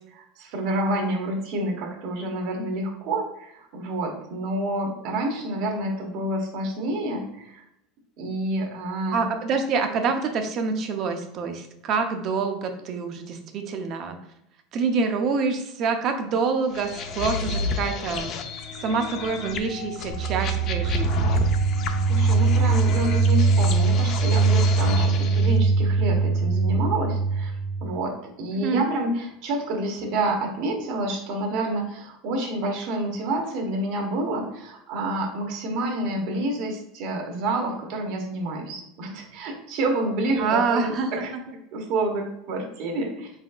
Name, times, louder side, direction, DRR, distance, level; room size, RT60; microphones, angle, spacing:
voice 1, 0.1-7.6 8.2-9.3 22.1-27.5 27.8-41.3 41.7-43.3, right 1 dB, 60° right, 2 dB, 1.1 m, -28 dB
voice 2, 9.1-14.2 14.7-18.3 18.8-21.4 28.5-28.9 40.4-41.2, right 4 dB, 40° right, 5 dB, 0.6 m, -26 dB
sound 1, 16.7-25.5, left 4 dB, 40° left, 0.5 m, -31 dB
sound 2, 20.1-27.9, right 4 dB, 80° left, 1.1 m, -21 dB
4.6 x 4.1 x 2.3 m, 0.80 s
supercardioid pair, 145°, 0 cm